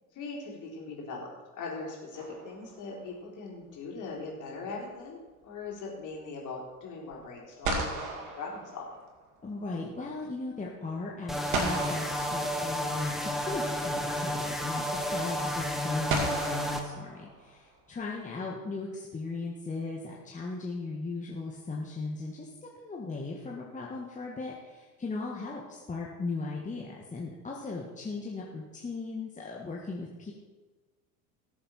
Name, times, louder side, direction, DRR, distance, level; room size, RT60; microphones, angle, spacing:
voice 1, 0.1-9.0, left 3 dB, 40° left, -3 dB, 4.2 m, -40 dB
sound 1, 2.2-3.0 7.1-7.2 7.6-9.4 11.5-13.1 14.5-14.6 16.1-17.7, right 3 dB, 65° right, 2.4 m, -35 dB
voice 2, 9.4-30.3, left 3 dB, 15° left, -3 dB, 1.8 m, -37 dB
sound 2, 11.3-16.8, equal, ahead, 1.4 m, -31 dB
18.5 x 7.6 x 4.4 m, 1.3 s
figure-of-eight pair, 70°, 46 cm